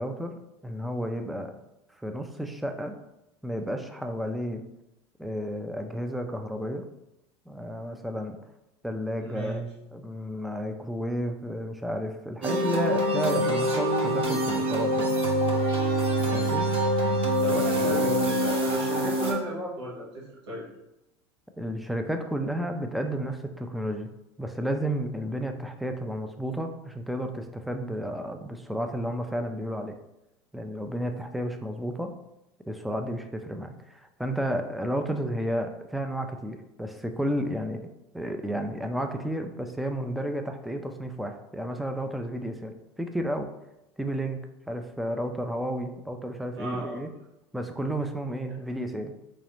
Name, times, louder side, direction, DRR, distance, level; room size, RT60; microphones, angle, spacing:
voice 1, 0.0-1.5 2.0-2.9 3.4-4.6 5.2-6.8 7.5-8.4 8.8-9.6 9.9-15.2 16.2-16.7 17.8-18.0 21.6-24.1 24.4-29.9 30.5-32.1 32.7-37.8 38.1-43.5 44.0-44.4 44.7-47.1 47.5-49.2, equal, ahead, 6 dB, 0.4 m, -32 dB
voice 2, 9.2-9.7 17.4-20.6 46.5-47.1, right 1 dB, 90° right, -5 dB, 1.4 m, -34 dB
sound 1, 12.4-19.3, right 1 dB, 40° right, 1.1 m, -25 dB
3.8 x 3.0 x 3.0 m, 0.90 s
hypercardioid pair, 90°, 14 cm